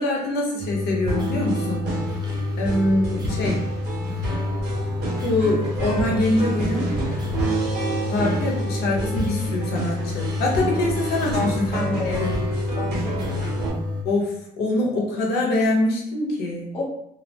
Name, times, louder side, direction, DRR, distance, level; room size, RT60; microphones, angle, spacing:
voice 1, 0.0-1.9 2.6-3.6 5.2-7.0 8.1-12.3 14.0-16.7, left 1 dB, 75° left, -1 dB, 0.8 m, -24 dB
sound 1, 0.6-14.0, left 3 dB, 25° right, 0.5 m, -28 dB
sound 2, 1.1-13.7, right 2 dB, 70° right, 1.1 m, -29 dB
voice 2, 12.8-13.8 16.7-16.9, left 2 dB, 35° left, -4 dB, 0.7 m, -31 dB
2.5 x 2.1 x 2.8 m, 0.75 s
cardioid pair, 110°, 17 cm